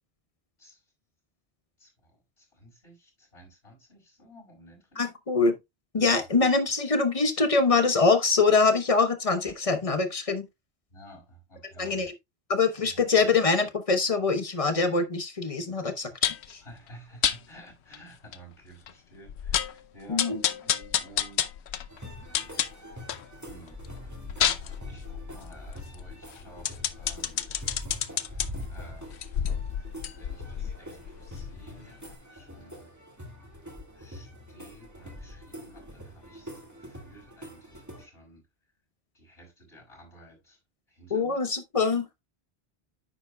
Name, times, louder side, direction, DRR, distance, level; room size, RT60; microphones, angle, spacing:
voice 1, 1.8-5.2 5.9-6.2 10.9-12.0 12.8-13.1 16.6-21.5 23.5-23.8 24.9-32.0 32.3-32.9 33.9-38.4 39.1-40.6 40.9-41.4, right 1 dB, 65° left, 5.3 m, -53 dB
voice 2, 5.0-5.5 5.9-10.5 11.8-12.1 12.5-16.1 16.5-16.6 20.1-20.4 41.1-42.1, left 4 dB, 35° left, 1.1 m, -24 dB
sound 1, 16.2-16.5 17.2-17.4 17.9-18.0 18.3-18.4 18.9-19.0 19.3-19.8 20.2-23.3 23.7-28.5 29.1-31.8 32.1-32.2, left 10 dB, 85° left, 0.9 m, -30 dB
sound 2, 21.9-38.1, left 1 dB, 15° right, 1.8 m, -44 dB
9.9 x 7.3 x 2.2 m
omnidirectional pair, 1.1 m